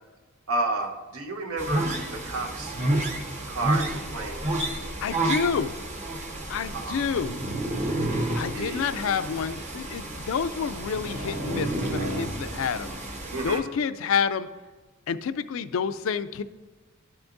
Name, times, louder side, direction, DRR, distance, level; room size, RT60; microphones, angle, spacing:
voice 1, 0.5-2.7 3.5-4.6 6.7-7.0 8.5-8.9 13.3-13.6, right 2 dB, 80° right, 2 dB, 1.0 m, -31 dB
sound 1, 1.6-13.6, right 1 dB, 35° right, 0.9 m, -30 dB
voice 2, 5.0-5.7 6.5-7.4 8.3-12.9 13.4-14.5 15.1-16.4, left 6 dB, 65° left, 13 dB, 0.4 m, -28 dB
12.0 x 5.9 x 2.6 m, 1.3 s
head